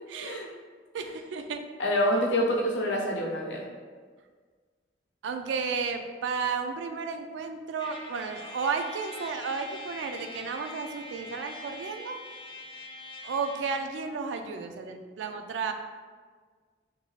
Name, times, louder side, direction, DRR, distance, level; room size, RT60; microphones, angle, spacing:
voice 1, 0.1-0.5 0.9-1.6 5.2-12.2 13.2-15.7, right 5 dB, 85° right, 6 dB, 0.3 m, -33 dB
voice 2, 1.8-3.6, equal, 75° left, -2 dB, 0.6 m, -26 dB
Trumpet, 7.8-13.9, left 2 dB, 30° left, 0.4 m, -44 dB
3.1 x 2.6 x 3.0 m, 1.6 s
head